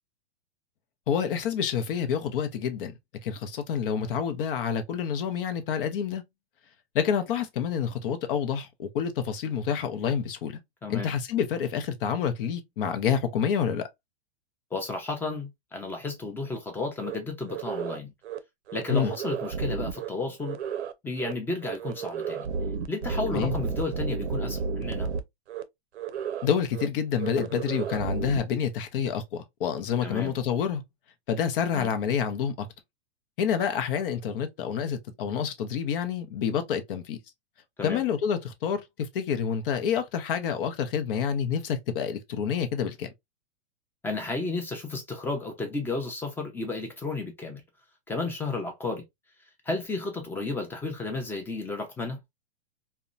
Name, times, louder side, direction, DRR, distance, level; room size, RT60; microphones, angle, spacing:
voice 1, 1.1-2.9 3.2-6.2 6.9-10.6 10.9-13.9 18.9-19.1 23.3-23.5 26.4-30.8 31.3-32.7 33.4-37.2 37.8-43.1, left 7 dB, 55° left, 0.7 m, -28 dB
voice 2, 10.8-11.1 14.7-18.1 18.7-20.6 21.0-22.5 22.9-25.1 30.0-30.3 31.7-31.9 37.8-38.0 44.0-47.6 48.1-49.0 49.7-52.2, left 3 dB, 5° left, 0.5 m, -33 dB
sound 1, 17.0-17.2 17.5-18.0 18.2-18.4 18.7-20.1 20.4-20.9 21.2-21.3 21.6-25.2 25.5-25.6 26.0-26.5 26.7-26.9 27.2-28.4, right 5 dB, 85° right, 0.5 m, -32 dB
2.8 x 2.2 x 2.4 m
hypercardioid pair, 130°, 32 cm